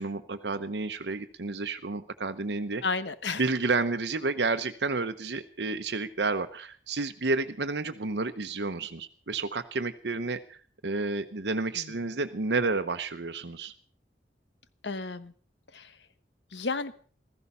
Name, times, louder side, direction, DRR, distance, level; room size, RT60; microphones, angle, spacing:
voice 1, 0.0-2.8 3.3-13.7, right 3 dB, 70° right, 8 dB, 0.9 m, -30 dB
voice 2, 2.8-3.4 11.7-11.9 14.8-15.3 15.7-15.9 16.5-16.9, left 4 dB, 75° left, 13 dB, 1.1 m, -32 dB
15.5 x 14.5 x 5.5 m, 0.44 s
head